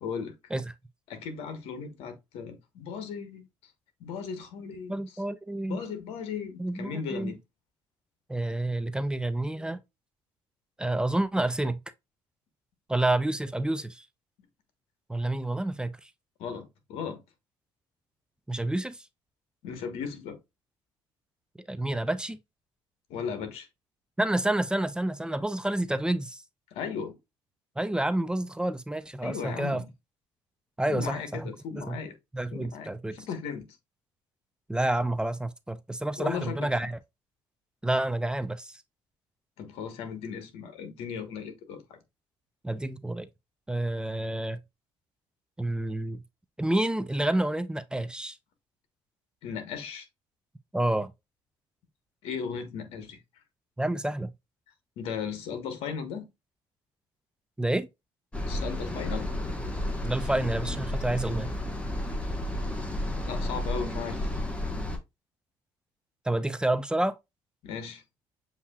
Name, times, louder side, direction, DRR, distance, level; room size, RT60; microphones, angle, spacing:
voice 1, 0.0-0.3 1.1-3.4 4.0-5.0 5.7-7.4 16.4-17.2 19.6-20.4 23.1-23.7 26.7-27.2 29.2-29.9 30.9-32.1 32.5-33.7 36.2-36.7 39.6-42.0 49.4-50.1 52.2-53.2 55.0-56.2 58.4-59.3 63.2-64.3 67.6-68.0, left 6 dB, 80° left, 1.2 m, -36 dB
voice 2, 4.9-5.8 6.6-7.3 8.3-9.8 10.8-11.8 12.9-14.1 15.1-16.1 18.5-19.0 21.7-22.4 24.2-26.4 27.8-29.8 30.8-31.5 31.8-32.0 32.3-33.2 34.7-37.0 37.8-38.8 42.6-43.3 43.7-44.6 45.6-46.2 46.6-48.4 50.7-51.1 53.8-54.3 57.6-57.9 60.0-61.5 66.3-67.1, right 1 dB, 10° right, 0.4 m, -29 dB
sound 1, 58.3-65.0, left 1 dB, 10° left, 1.0 m, -32 dB
7.2 x 2.7 x 2.3 m
cardioid pair, 95°, 10 cm